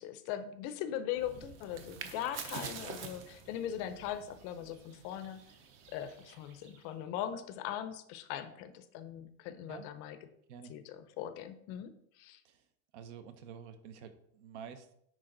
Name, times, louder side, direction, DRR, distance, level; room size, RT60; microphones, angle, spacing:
voice 1, 0.0-5.4 5.9-10.2 10.7-12.4, left 10 dB, 40° left, 11 dB, 0.6 m, -40 dB
sound 1, 1.1-6.9, right 6 dB, 35° right, 0.8 m, -47 dB
voice 2, 12.9-14.9, right 7 dB, 65° right, 9 dB, 1.1 m, -49 dB
10.0 x 4.6 x 3.8 m, 0.72 s
supercardioid pair, 175°, 37 cm